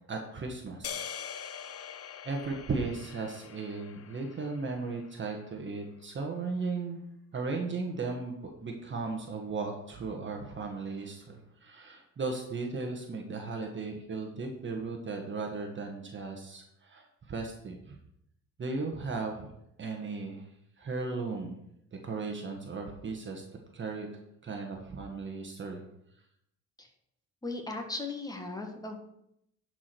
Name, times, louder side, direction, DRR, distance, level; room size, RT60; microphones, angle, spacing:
voice 1, 0.1-1.0 2.2-7.0 7.3-18.0 18.6-19.5 19.8-20.5 20.8-21.6 21.9-23.4 23.7-24.1 24.4-25.8, right 4 dB, 35° right, 2 dB, 1.5 m, -36 dB
sound 1, 0.8-5.2, left 8 dB, 50° left, 0.7 m, -43 dB
voice 2, 27.4-29.0, left 3 dB, 10° left, 3 dB, 1.8 m, -37 dB
11.0 x 4.9 x 6.1 m, 0.77 s
cardioid pair, 120°, 32 cm